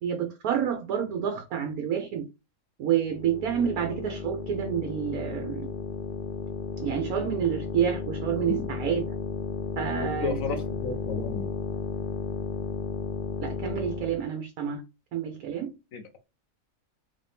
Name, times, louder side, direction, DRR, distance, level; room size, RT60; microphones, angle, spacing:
voice 1, 0.0-2.2 2.8-5.7 6.8-9.1 9.8-10.6 13.4-14.8 15.1-15.7, right 9 dB, 90° right, 1.2 m, -29 dB
sound 1, 3.0-14.2, left 5 dB, 85° left, 0.4 m, -34 dB
voice 2, 10.0-11.5 15.9-16.3, left 4 dB, 70° left, 1.1 m, -33 dB
3.6 x 2.7 x 3.4 m
omnidirectional pair, 1.5 m